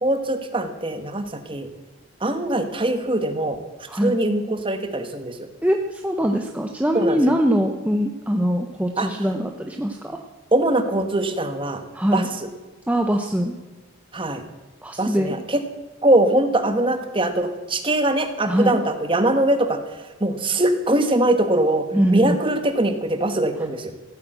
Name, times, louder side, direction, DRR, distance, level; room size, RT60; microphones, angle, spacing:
voice 1, 0.0-1.7 2.2-3.6 4.0-5.5 6.9-7.2 9.0-9.1 10.5-11.8 12.1-12.2 14.1-14.4 15.0-15.6 16.0-19.8 20.2-23.9, right 1 dB, 25° right, 7 dB, 1.3 m, -22 dB
voice 2, 5.6-10.2 11.9-12.3 12.9-13.5 14.8-15.4 18.5-18.8 21.9-22.4, equal, 5° right, 3 dB, 0.7 m, -22 dB
15.5 x 9.2 x 7.8 m, 1.2 s
head